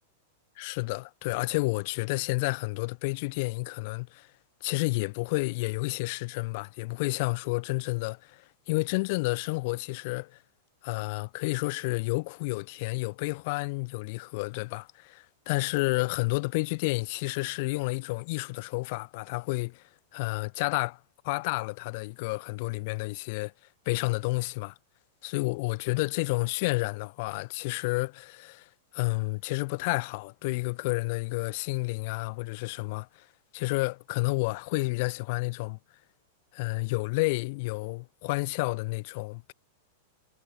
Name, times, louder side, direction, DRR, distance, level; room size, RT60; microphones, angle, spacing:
voice 1, 0.6-4.3 4.6-10.4 10.8-19.8 20.1-21.0 21.2-23.5 23.8-24.7 25.2-33.3 33.5-35.8 36.5-39.5, left 25 dB, 55° left, 1.2 m, -30 dB
hypercardioid pair, 125°, 0 cm